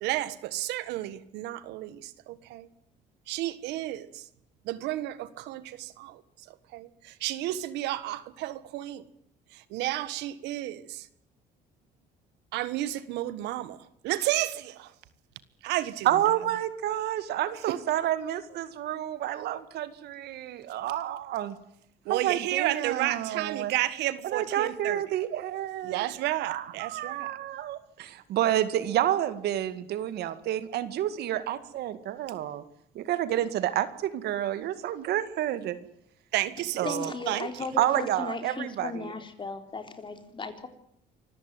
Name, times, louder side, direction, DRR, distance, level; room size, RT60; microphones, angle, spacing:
voice 1, 0.0-2.7 3.3-4.2 4.6-6.2 6.5-9.0 9.5-11.1 12.5-13.8 14.0-14.9 15.6-16.2 17.7-17.8 22.0-25.0 25.8-27.4 36.3-37.0 37.3-37.5, right 15 dB, 90° right, 1.6 m, -32 dB
voice 2, 16.1-21.6 22.1-23.7 24.2-26.0 26.4-32.6 33.0-35.8 36.8-37.1 37.8-39.1, right 12 dB, 75° right, 2.0 m, -29 dB
voice 3, 36.8-40.7, left 3 dB, 30° left, 3.9 m, -36 dB
25.5 x 14.5 x 9.3 m
cardioid pair, 110°, 17 cm